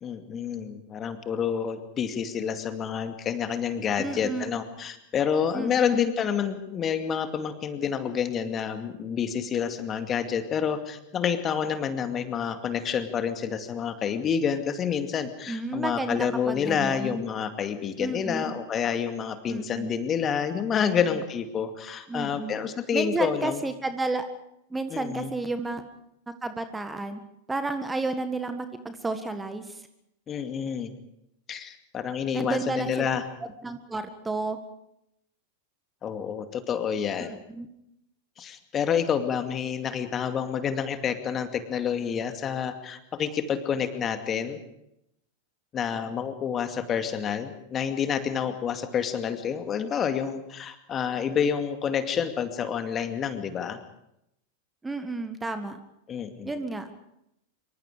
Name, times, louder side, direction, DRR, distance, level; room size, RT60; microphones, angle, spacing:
voice 1, 0.0-23.6 24.9-25.3 30.3-30.9 31.5-33.3 36.0-37.3 38.4-44.6 45.7-53.8 56.1-56.5, left 7 dB, 25° left, 8 dB, 2.3 m, -28 dB
voice 2, 4.0-4.5 5.5-6.1 15.5-17.2 18.0-18.5 19.5-20.0 20.9-21.0 22.1-22.5 22.9-24.2 24.7-25.8 26.4-27.2 27.5-29.8 32.3-33.1 33.6-34.6 37.5-37.7 54.8-55.8 56.5-56.9, right 3 dB, 10° right, 9 dB, 1.7 m, -31 dB
26.0 x 24.5 x 5.0 m, 0.80 s
figure-of-eight pair, 90°, 0 cm